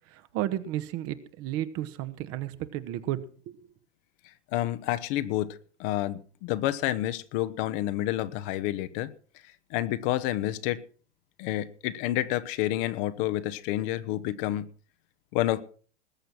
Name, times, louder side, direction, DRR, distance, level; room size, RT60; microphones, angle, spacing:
voice 1, 0.1-3.2 3.5-3.7, right 13 dB, 40° right, 12 dB, 1.4 m, -33 dB
voice 2, 4.5-5.5 5.8-9.1 9.7-10.8 11.4-14.6 15.3-15.6, left 14 dB, 50° left, 12 dB, 1.2 m, -29 dB
20.0 x 8.0 x 6.1 m, 0.42 s
hypercardioid pair, 100°, 35 cm